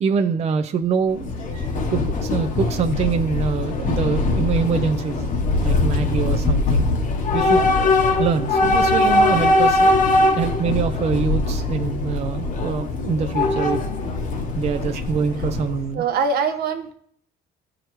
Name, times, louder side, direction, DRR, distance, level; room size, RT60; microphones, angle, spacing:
voice 1, 0.0-5.3 5.6-6.9 7.3-7.8 8.2-10.0 10.4-13.8 14.5-16.0, right 6 dB, 40° right, 7 dB, 0.5 m, -24 dB
Train / Subway metro underground, 1.1-15.9, left 2 dB, 50° left, 1.1 m, -21 dB
voice 2, 15.9-16.9, right 5 dB, 65° right, 6 dB, 1.1 m, -22 dB
14.5 x 5.0 x 3.1 m, 0.64 s
cardioid pair, 110°, 17 cm